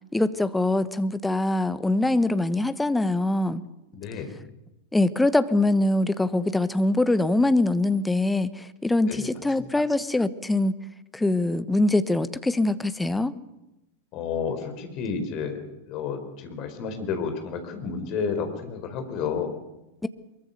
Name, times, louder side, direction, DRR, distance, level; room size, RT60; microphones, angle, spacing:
voice 1, 0.1-3.6 4.9-10.8 11.1-13.3 20.0-20.1, left 2 dB, 5° left, 13 dB, 1.1 m, -23 dB
voice 2, 3.9-4.3 9.1-9.3 9.6-9.7 14.1-19.6, left 6 dB, 40° left, 7 dB, 4.4 m, -31 dB
23.0 x 22.5 x 7.0 m, 0.94 s
figure-of-eight pair, 90°, 0 cm